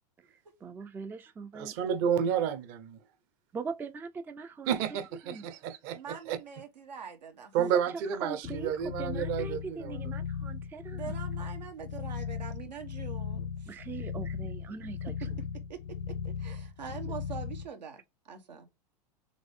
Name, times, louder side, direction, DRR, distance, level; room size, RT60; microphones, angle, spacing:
voice 1, 0.6-1.7 2.2-2.3 3.5-4.8 5.2-5.5 7.6-11.2 13.7-15.3, right 5 dB, 10° right, 0.3 m, -41 dB
voice 2, 1.5-3.0 4.7-6.4 7.5-10.0, right 8 dB, 50° right, 0.9 m, -31 dB
voice 3, 5.9-7.5 10.9-13.8 14.7-14.9 15.2-15.3 15.7-18.7, right 7 dB, 90° right, 1.1 m, -44 dB
sound 1, 8.4-17.7, left 7 dB, 70° left, 0.8 m, -37 dB
3.8 x 3.2 x 3.6 m
hypercardioid pair, 105°, 21 cm